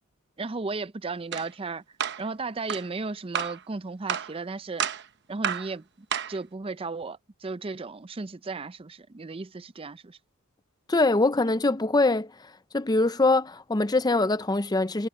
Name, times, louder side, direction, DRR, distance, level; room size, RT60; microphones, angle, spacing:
voice 1, 0.4-1.8 2.2-4.8 5.3-5.8 6.3-10.2, right 3 dB, 25° right, 0.5 m, -35 dB
sound 1, 1.3-1.5 2.0-2.2 2.7-2.9 3.3-3.6 4.1-4.3 4.8-5.1 5.4-5.7 6.1-6.4, right 8 dB, 50° right, 0.9 m, -30 dB
voice 2, 10.9-15.1, left 2 dB, 20° left, 0.6 m, -23 dB
head